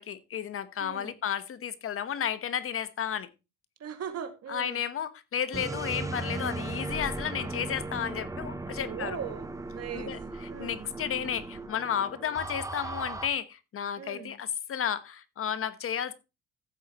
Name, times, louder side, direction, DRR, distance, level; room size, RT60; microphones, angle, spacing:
voice 1, 0.0-3.3 4.5-9.2 9.9-16.1, left 9 dB, 40° left, 14 dB, 1.1 m, -33 dB
voice 2, 0.8-1.1 3.8-4.8 8.8-9.5 9.7-10.1 10.5-10.9 14.0-14.3, right 8 dB, 45° right, 8 dB, 2.1 m, -39 dB
sound 1, 5.5-13.3, right 2 dB, 10° right, 0.9 m, -37 dB
15.0 x 8.0 x 3.0 m, 0.27 s
cardioid pair, 130°, 34 cm